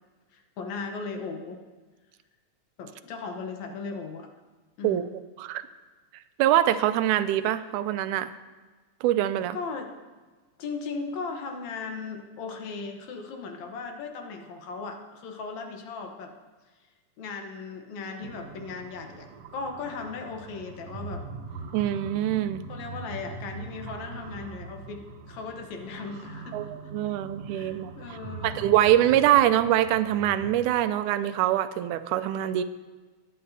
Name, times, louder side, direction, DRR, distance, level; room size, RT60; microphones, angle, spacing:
voice 1, 0.3-1.6 2.8-4.3 4.8-5.2 9.5-9.9 10.6-16.3 17.2-19.3 19.5-21.3 22.7-27.2 27.5-28.6, left 4 dB, 70° left, 4 dB, 2.3 m, -37 dB
voice 2, 6.4-8.3 9.0-9.6 21.7-22.6 26.5-27.9 28.4-32.6, right 12 dB, 90° right, 12 dB, 2.0 m, -24 dB
sound 1, 18.2-30.7, right 4 dB, 70° right, 1.6 m, -42 dB
21.5 x 9.6 x 2.8 m, 1.3 s
omnidirectional pair, 3.4 m